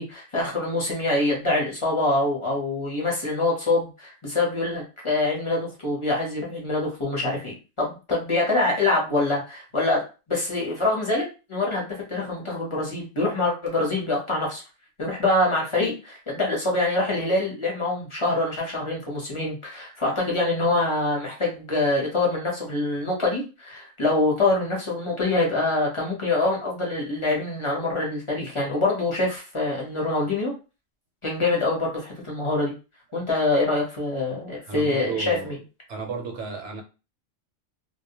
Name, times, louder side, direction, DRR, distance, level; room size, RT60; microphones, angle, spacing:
voice 1, 0.0-10.0 10.3-14.6 15.0-30.5 31.2-32.7 33.1-35.6, left 2 dB, 30° left, -3 dB, 0.7 m, -25 dB
voice 2, 34.7-35.6 35.9-36.8, right 5 dB, 65° right, 3 dB, 0.9 m, -33 dB
2.3 x 2.1 x 2.8 m, 0.31 s
omnidirectional pair, 1.4 m